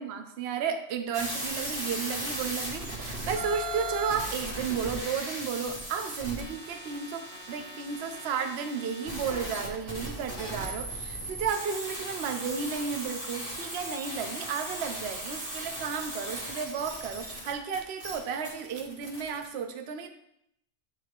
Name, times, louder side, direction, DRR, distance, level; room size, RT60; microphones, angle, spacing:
voice 1, 0.0-20.1, right 6 dB, 60° right, 6 dB, 0.8 m, -33 dB
sound 1, 1.1-19.5, right 1 dB, 40° right, 1.6 m, -37 dB
8.8 x 3.3 x 4.7 m, 0.75 s
omnidirectional pair, 1.4 m